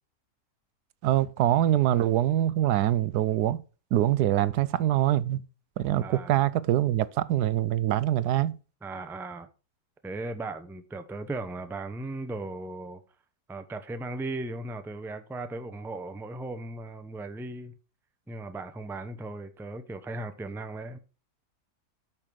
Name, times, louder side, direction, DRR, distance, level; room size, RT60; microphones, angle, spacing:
voice 1, 1.0-3.6 3.9-5.4 5.8-8.5, right 12 dB, 85° right, 1.2 m, -24 dB
voice 2, 6.0-6.4 8.8-9.5 10.0-13.0 13.5-17.8 18.3-21.0, right 2 dB, ahead, 0.5 m, -37 dB
8.8 x 5.6 x 6.3 m
omnidirectional pair, 1.7 m